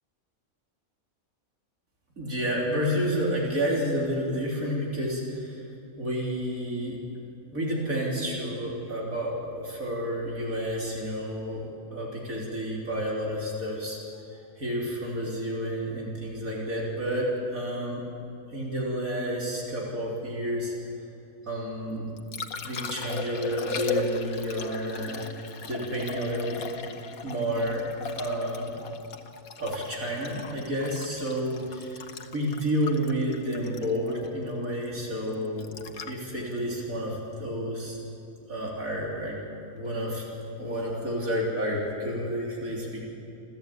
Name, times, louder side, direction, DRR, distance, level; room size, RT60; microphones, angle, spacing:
voice 1, 2.2-5.6 6.0-7.0 7.5-11.6 11.9-14.0 14.6-18.0 18.5-20.7 21.5-22.1 22.6-25.2 25.7-26.7 27.2-27.9 28.1-28.7 29.6-32.0 32.3-35.7 36.0-38.0 38.5-39.4 39.7-40.2 40.6-43.0, equal, 75° right, -3 dB, 4.0 m, -30 dB
Liquid, 21.9-38.0 40.8-40.9, left 5 dB, 85° left, 1.6 m, -38 dB
28.5 x 13.5 x 8.6 m, 2.7 s
omnidirectional pair, 1.5 m